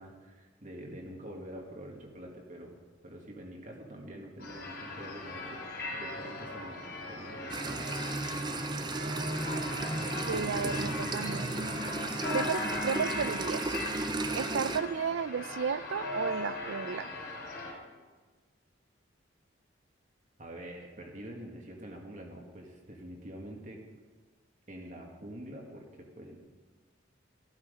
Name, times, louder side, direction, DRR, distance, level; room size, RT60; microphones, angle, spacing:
voice 1, 0.0-2.8 3.0-5.6 5.9-7.9 20.4-23.8 24.7-26.4, right 1 dB, 40° right, 0 dB, 1.9 m, -46 dB
sound 1, 4.4-17.7, left 2 dB, 50° left, 3.6 m, -39 dB
sound 2, 7.5-14.8, right 2 dB, 20° right, 0.6 m, -34 dB
voice 2, 10.3-11.5 12.3-13.6 14.3-17.1, right 6 dB, 80° right, 17 dB, 0.4 m, -33 dB
14.0 x 12.5 x 5.2 m, 1.4 s
head